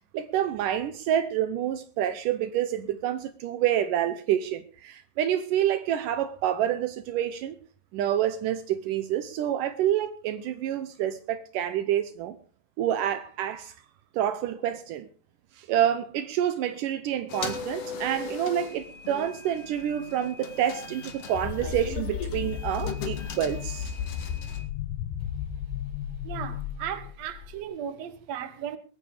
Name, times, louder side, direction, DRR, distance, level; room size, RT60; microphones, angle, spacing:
voice 1, 0.1-7.6 7.9-12.4 12.8-13.7 14.1-15.1 15.6-23.9, right 11 dB, 90° right, 1.8 m, -28 dB
sound 1, 17.3-24.6, left 4 dB, 50° left, 2.1 m, -39 dB
sound 2, 21.3-27.6, left 9 dB, 75° left, 2.8 m, -34 dB
voice 2, 26.2-28.8, right 9 dB, 65° right, 1.7 m, -36 dB
21.0 x 9.6 x 5.0 m
omnidirectional pair, 5.0 m